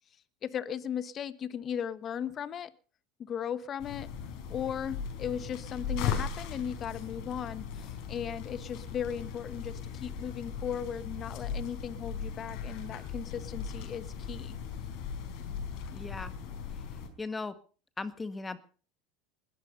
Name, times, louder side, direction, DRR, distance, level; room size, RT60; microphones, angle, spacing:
voice 1, 0.4-2.7 3.2-4.1 4.5-14.6, left 8 dB, 35° left, 14 dB, 1.2 m, -37 dB
sound 1, 3.8-17.1, left 6 dB, 60° left, 4.5 m, -38 dB
voice 2, 15.9-16.3 16.8-16.9 17.2-17.6 18.0-18.6, left 3 dB, 15° left, 11 dB, 1.7 m, -37 dB
20.5 x 12.5 x 5.4 m, 0.40 s
supercardioid pair, 110°, 0 cm